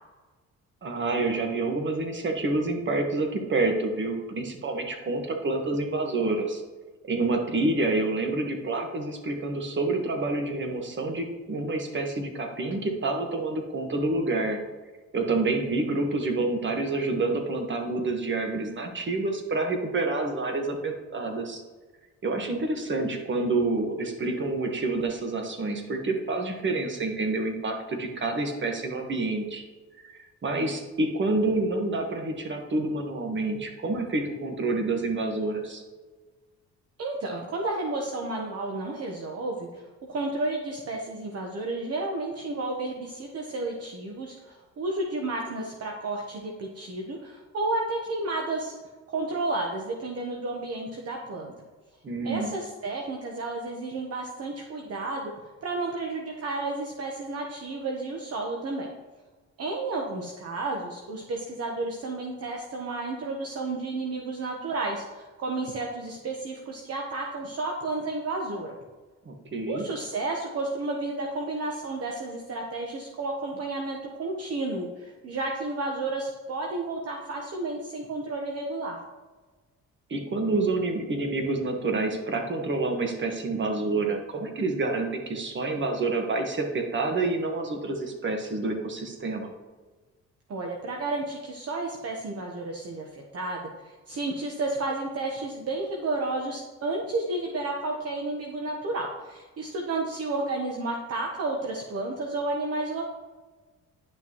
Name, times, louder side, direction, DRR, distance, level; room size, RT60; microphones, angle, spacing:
voice 1, 0.8-6.6 7.0-14.6 15.1-21.6 22.2-29.6 30.1-35.8 52.0-52.5 69.2-69.8 80.1-89.5, right 2 dB, 40° right, 4 dB, 1.4 m, -28 dB
voice 2, 37.0-39.8 40.1-48.7 49.1-51.5 52.2-55.3 55.6-58.9 59.6-68.8 69.7-79.0 90.5-103.1, right 2 dB, 55° right, 1 dB, 1.1 m, -32 dB
10.5 x 6.0 x 3.0 m, 1.3 s
cardioid pair, 90°, 30 cm